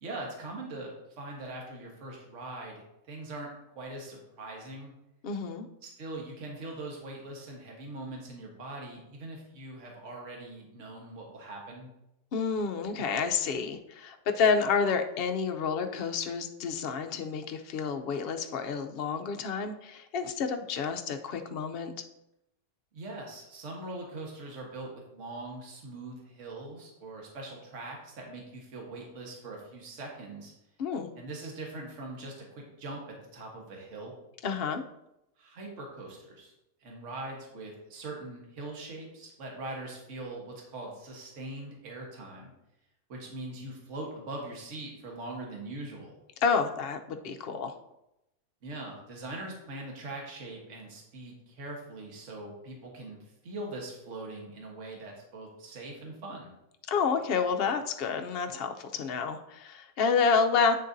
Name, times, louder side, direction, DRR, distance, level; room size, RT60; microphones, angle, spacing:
voice 1, 0.0-0.9 1.2-3.5 3.7-4.9 5.8-11.9 22.9-30.5 31.2-33.0 33.3-34.1 35.4-36.5 36.8-42.5 43.1-46.1 48.6-56.5, right 2 dB, 55° right, -1 dB, 1.6 m, -42 dB
voice 2, 5.2-5.7 12.3-22.0 30.8-31.1 34.4-34.8 46.4-47.7 56.9-60.8, left 5 dB, 55° left, 5 dB, 0.7 m, -29 dB
8.8 x 6.5 x 2.6 m, 0.87 s
omnidirectional pair, 1.5 m